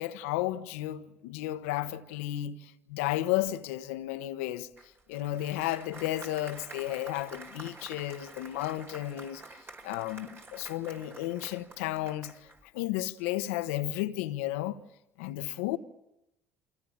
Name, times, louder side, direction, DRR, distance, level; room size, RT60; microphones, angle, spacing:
voice 1, 0.0-4.7 5.1-9.4 9.8-12.3 12.7-14.8 15.2-15.8, left 15 dB, 80° left, 1.2 m, -33 dB
Applause, 4.8-12.7, right 2 dB, 30° right, 5.1 m, -49 dB
29.0 x 25.5 x 7.5 m
hypercardioid pair, 65°, 7 cm